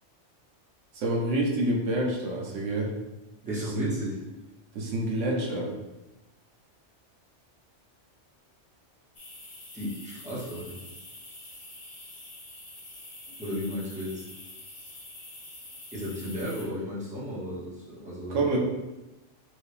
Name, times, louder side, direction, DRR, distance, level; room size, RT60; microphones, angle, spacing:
voice 1, 0.9-2.9 3.4-3.9 4.7-5.7 18.3-18.6, right 1 dB, 90° right, -1 dB, 1.2 m, -28 dB
voice 2, 3.4-4.2 9.7-10.8 13.4-14.3 15.9-18.4, left 1 dB, 5° right, -9 dB, 1.3 m, -34 dB
sound 1, 9.1-16.6, left 1 dB, 40° left, 1.0 m, -46 dB
4.7 x 2.7 x 3.3 m, 1.0 s
omnidirectional pair, 1.2 m